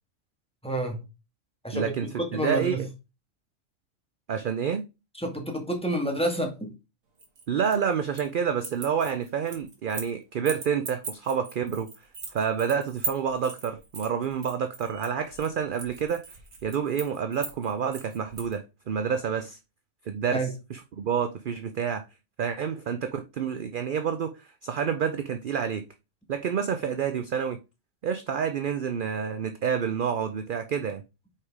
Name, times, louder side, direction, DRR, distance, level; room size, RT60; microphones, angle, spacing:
voice 1, 0.6-1.0 1.6-2.9 5.1-6.7 20.3-20.5, right 1 dB, 5° left, 1.8 m, -29 dB
voice 2, 1.7-2.1 2.3-2.8 4.3-4.9 7.5-11.9 12.3-16.2 16.6-19.6 20.1-20.4 20.7-22.0 22.4-25.9 26.3-27.6 28.0-31.0, right 7 dB, 55° right, 0.6 m, -28 dB
sound 1, 7.2-8.3 8.6-10.1 10.5-18.5, right 4 dB, 85° right, 2.0 m, -39 dB
5.8 x 4.8 x 4.8 m
omnidirectional pair, 1.4 m